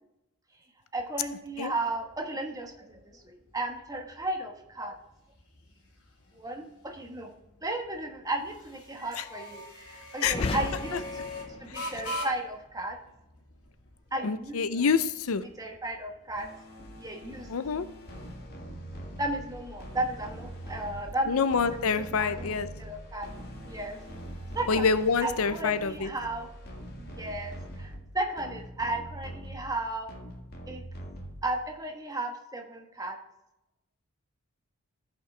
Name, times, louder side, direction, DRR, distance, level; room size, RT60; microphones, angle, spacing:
voice 1, 0.9-4.9 6.3-7.3 7.6-11.2 11.6-13.0 14.1-14.6 15.6-16.5 17.0-17.5 19.2-21.5 22.1-23.3 23.7-24.0 24.5-24.9 25.2-26.5 27.0-30.1 30.7-30.8 31.4-33.2, right 2 dB, 15° right, 2 dB, 1.2 m, -34 dB
sound 1, 1.0-18.2, left 1 dB, 90° left, 2.6 m, -44 dB
voice 2, 10.2-10.6 10.9-11.0 11.7-11.8 14.2-15.4 17.5-17.9 21.3-22.7 24.7-26.1, left 5 dB, 75° left, 13 dB, 0.6 m, -27 dB
sound 2, 10.2-12.2, left 2 dB, 25° left, 0.5 m, -37 dB
sound 3, 16.4-31.8, equal, 45° left, 1.8 m, -43 dB
14.5 x 5.8 x 3.3 m, 0.90 s
head